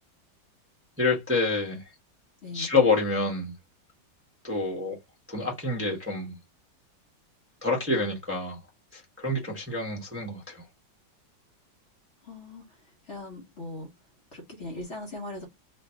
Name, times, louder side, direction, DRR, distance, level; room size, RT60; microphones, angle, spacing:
voice 1, 1.0-1.9 2.5-3.5 4.4-5.0 5.3-6.4 7.6-8.6 8.9-10.6, left 3 dB, 10° right, 0.9 m, -27 dB
voice 2, 12.2-12.7 13.0-13.9 14.3-15.5, left 2 dB, 45° left, 1.1 m, -39 dB
3.2 x 2.5 x 4.4 m
omnidirectional pair, 2.0 m